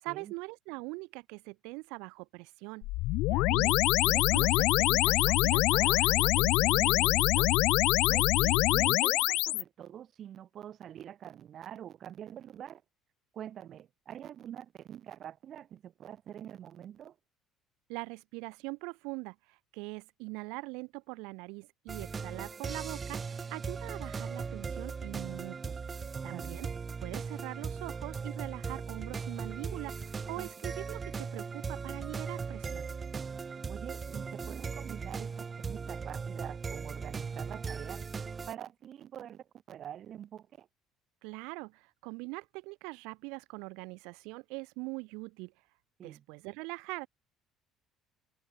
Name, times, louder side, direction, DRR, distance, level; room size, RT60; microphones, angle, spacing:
voice 1, 0.0-2.9 3.5-3.8 4.0-7.5 17.9-25.8 26.2-26.7 27.0-32.9 41.2-45.5 46.0-47.1, right 29 dB, 90° right, 2.7 m, -42 dB
sound 1, 2.8-9.6, left 20 dB, 80° left, 0.8 m, -25 dB
voice 2, 8.1-12.8 13.3-17.2 26.3-26.6 30.4-30.5 33.7-38.1 38.5-40.7 46.0-46.2, right 10 dB, 50° right, 2.8 m, -46 dB
sound 2, 21.9-38.5, right 5 dB, 25° right, 0.7 m, -38 dB
open air
cardioid pair, 115°, 0 cm